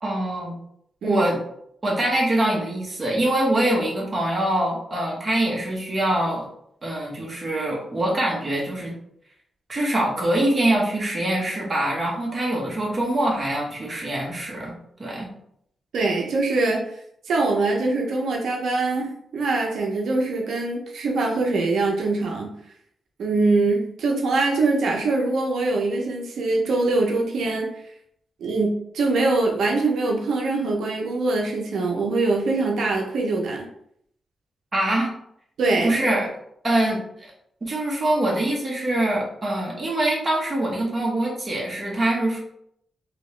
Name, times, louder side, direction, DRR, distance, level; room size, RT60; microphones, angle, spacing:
voice 1, 0.0-0.6 1.0-1.4 1.8-6.5 6.8-8.9 9.7-14.7 15.0-15.3 34.7-35.1 35.8-36.3 36.6-37.0 37.6-42.4, right 1 dB, 25° right, -3 dB, 1.0 m, -24 dB
voice 2, 15.9-16.8 17.3-22.5 23.2-27.7 28.4-33.6 35.6-35.9, right 3 dB, 85° right, 0 dB, 0.6 m, -23 dB
3.0 x 2.8 x 3.1 m, 0.71 s
wide cardioid pair, 150°, 0 cm